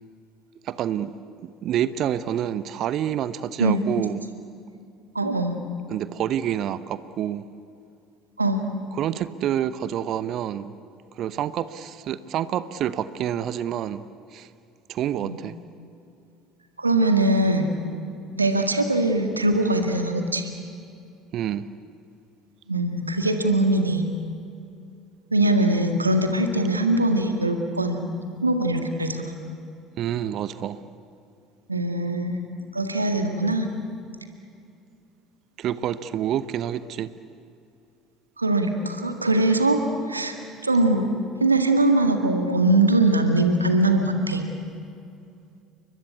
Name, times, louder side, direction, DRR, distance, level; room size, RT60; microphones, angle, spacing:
voice 1, 0.6-1.1 1.4-4.2 5.9-7.5 8.9-10.7 11.2-14.0 14.3-14.5 14.9-15.6 21.3-21.7 30.0-30.8 35.6-37.1, right 10 dB, 50° right, 15 dB, 0.8 m, -28 dB
voice 2, 5.2-5.6 8.4-8.6 15.2-15.4 16.8-17.7 18.4-20.5 22.7-24.0 25.3-28.1 28.4-29.3 31.7-32.4 32.7-33.6 38.4-39.8 40.1-40.3 40.6-41.1 41.4-44.4, right 2 dB, 85° right, 6 dB, 1.9 m, -21 dB
30.0 x 23.5 x 8.4 m, 2.5 s
figure-of-eight pair, 60°, 0 cm